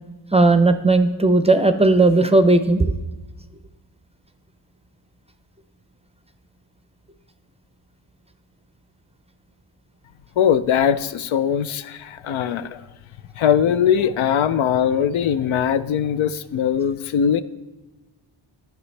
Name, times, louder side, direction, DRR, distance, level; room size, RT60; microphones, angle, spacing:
voice 1, 0.3-2.9, right 2 dB, 15° right, 9 dB, 0.5 m, -16 dB
voice 2, 10.4-12.8 13.4-17.4, left 8 dB, 75° left, 14 dB, 0.5 m, -20 dB
11.0 x 6.4 x 3.3 m, 1.1 s
cardioid pair, 80°, 49 cm